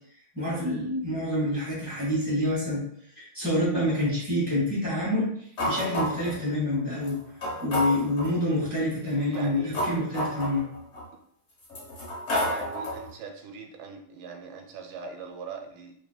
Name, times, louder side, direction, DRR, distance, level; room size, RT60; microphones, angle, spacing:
voice 1, 0.3-2.8 3.1-5.3 5.7-7.2 7.6-10.6, left 1 dB, 15° left, -8 dB, 1.4 m, -27 dB
sound 1, 5.6-6.4 7.0-7.1 7.4-8.3 9.2-11.0 11.6-13.1, left 1 dB, 40° left, 1.3 m, -30 dB
voice 2, 9.0-9.8 12.3-16.0, right 4 dB, 85° right, 4 dB, 1.4 m, -41 dB
4.9 x 3.2 x 2.3 m, 0.65 s
omnidirectional pair, 2.1 m